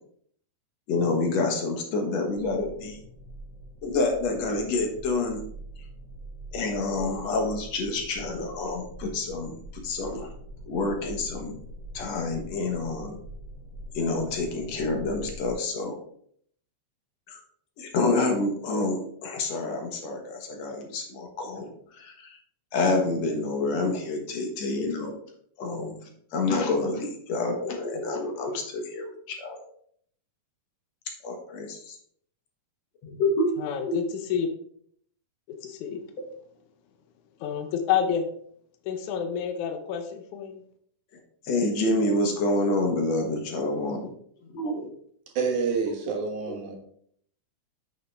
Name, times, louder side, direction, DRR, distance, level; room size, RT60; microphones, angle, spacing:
voice 1, 0.9-3.0 3.8-5.4 6.5-9.5 9.8-10.3 10.7-11.5 11.9-13.2 13.9-16.0 17.3-17.4 17.8-22.4 22.7-25.2 25.6-25.9 26.3-29.6 31.2-32.0 33.0-33.5 33.8-34.0 41.5-44.0 44.5-44.9 45.4-45.5 46.0-46.1 46.5-46.6, left 2 dB, 65° left, 2 dB, 2.3 m, -28 dB
sound 1, 2.3-15.5, right 1 dB, 40° left, 2.1 m, -44 dB
voice 2, 33.6-34.5 35.5-36.0 37.4-38.3 38.9-40.6, left 8 dB, 85° left, 7 dB, 2.3 m, -29 dB
voice 3, 45.4-46.8, right 5 dB, 80° right, 2 dB, 2.9 m, -28 dB
8.6 x 6.5 x 3.5 m, 0.64 s
omnidirectional pair, 3.4 m